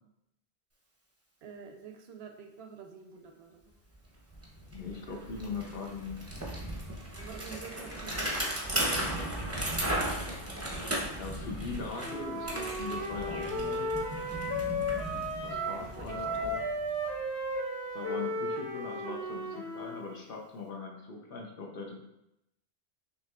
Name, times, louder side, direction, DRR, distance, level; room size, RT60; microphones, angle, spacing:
voice 1, 1.4-3.6 7.2-9.4 15.5-16.5, right 6 dB, 80° right, 5 dB, 0.8 m, -48 dB
Bicycle, 3.9-4.0 4.3-17.2, right 1 dB, 15° right, 0.6 m, -36 dB
voice 2, 4.7-6.2 11.1-14.0 15.4-16.6 17.9-22.0, left 4 dB, 65° left, 0 dB, 0.9 m, -40 dB
Wind instrument woodwind instrument, 12.0-15.8 16.1-20.1, equal, 85° left, 1.2 m, -34 dB
5.7 x 3.0 x 2.3 m, 0.85 s
omnidirectional pair, 1.1 m